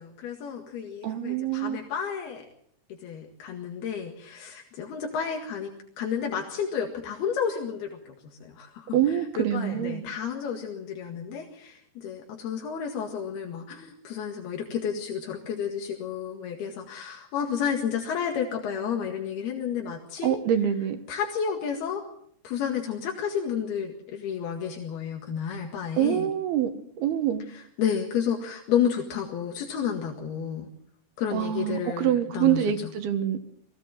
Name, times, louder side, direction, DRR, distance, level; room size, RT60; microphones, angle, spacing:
voice 1, 0.0-2.4 2.9-5.7 6.0-20.4 21.1-22.0 22.4-26.3 27.5-30.7 31.2-32.9, left 7 dB, 80° left, 3.9 m, -31 dB
voice 2, 1.0-1.8 8.9-10.0 20.2-21.0 26.0-26.7 27.0-27.4 31.3-33.4, right 10 dB, 80° right, 3.4 m, -25 dB
22.0 x 16.5 x 7.7 m
omnidirectional pair, 4.4 m